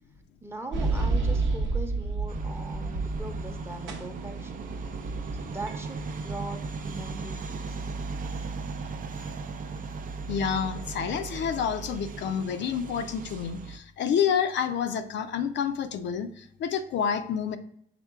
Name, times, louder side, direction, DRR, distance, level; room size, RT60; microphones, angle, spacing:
voice 1, 0.4-4.7 5.3-7.8, right 1 dB, 10° right, 4 dB, 0.7 m, -40 dB
sound 1, 0.7-3.6 3.9-7.4, right 3 dB, 70° right, 0.8 m, -31 dB
sound 2, 2.3-13.8, right 4 dB, 45° right, 0.4 m, -37 dB
voice 2, 10.3-17.6, left 7 dB, 65° left, 8 dB, 0.4 m, -29 dB
5.8 x 3.6 x 2.3 m, 0.67 s
cardioid pair, 90°, 20 cm